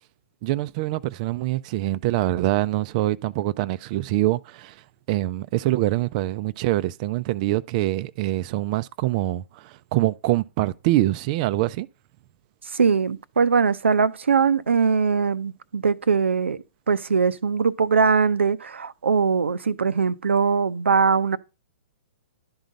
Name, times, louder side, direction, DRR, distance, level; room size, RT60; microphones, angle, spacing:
voice 1, 0.4-11.9, right 16 dB, 40° right, 0.4 m, -24 dB
voice 2, 12.7-21.4, right 5 dB, 85° right, 0.6 m, -21 dB
11.5 x 3.9 x 5.2 m
hypercardioid pair, 130°, 6 cm